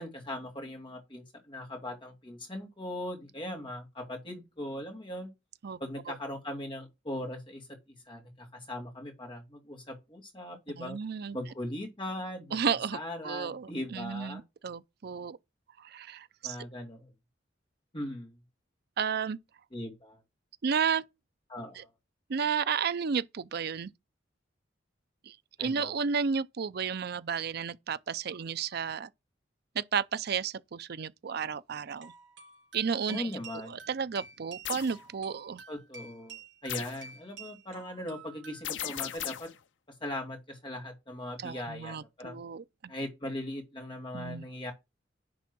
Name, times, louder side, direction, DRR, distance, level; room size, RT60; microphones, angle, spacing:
voice 1, 0.0-5.3 5.8-11.0 11.3-12.6 12.9-14.4 16.4-17.1 17.9-18.4 19.7-20.2 21.5-21.9 25.6-26.0 33.1-33.8 35.7-39.5 40.0-42.4 42.9-44.7, left 1 dB, 30° left, 2.3 m, -39 dB
voice 2, 10.8-11.4 12.5-13.0 13.2-15.4 15.8-16.6 19.0-19.4 20.6-21.0 21.8-21.9 22.3-23.9 25.3-29.1 29.7-32.1 32.7-33.4 33.7-35.6 41.4-42.6 44.1-44.5, right 6 dB, 60° right, 0.5 m, -32 dB
sound 1, 32.0-39.2, right 4 dB, 90° right, 3.6 m, -50 dB
sound 2, 34.6-35.0 36.7-37.1 38.6-39.6, left 11 dB, 80° left, 0.6 m, -36 dB
10.5 x 3.6 x 6.1 m
head